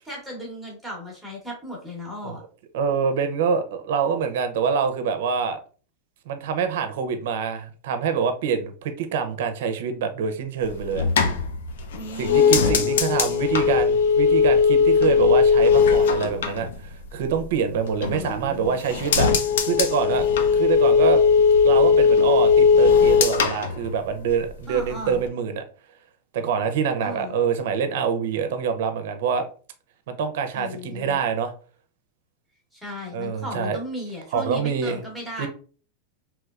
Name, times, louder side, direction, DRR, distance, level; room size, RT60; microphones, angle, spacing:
voice 1, 0.0-2.4 11.9-13.2 18.0-18.8 24.7-25.2 27.0-27.3 30.5-31.2 32.7-35.5, left 1 dB, ahead, -4 dB, 1.0 m, -36 dB
voice 2, 2.7-5.6 6.3-11.1 12.2-20.3 20.5-21.2 21.6-25.6 26.3-29.5 30.1-31.5 33.1-33.8 34.3-35.0 35.4-35.5, right 6 dB, 65° right, 9 dB, 0.5 m, -25 dB
sound 1, 10.6-17.4 17.8-18.5 18.8-24.5 24.8-25.3, left 5 dB, 85° left, 0.5 m, -19 dB
3.2 x 3.0 x 2.4 m, 0.40 s
supercardioid pair, 160°, 0 cm